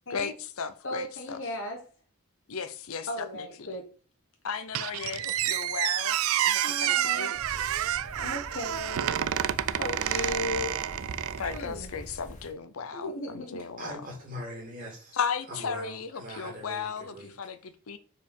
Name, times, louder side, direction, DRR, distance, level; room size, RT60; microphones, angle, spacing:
voice 1, 0.1-1.4 2.5-3.1 3.3-3.7 4.4-7.4 11.4-14.0 15.1-18.0, left 6 dB, 80° left, 0.7 m, -36 dB
voice 2, 0.8-1.8 3.1-3.9 6.6-7.3 8.2-9.2 9.8-10.8 11.5-11.9 12.9-13.6, left 1 dB, 60° left, 1.3 m, -36 dB
Squeak, 4.7-11.6, right 11 dB, 80° right, 0.4 m, -29 dB
sound 1, 7.3-12.5, equal, 35° left, 1.1 m, -44 dB
voice 3, 13.8-17.3, equal, 40° right, 2.3 m, -42 dB
4.9 x 4.8 x 5.4 m
head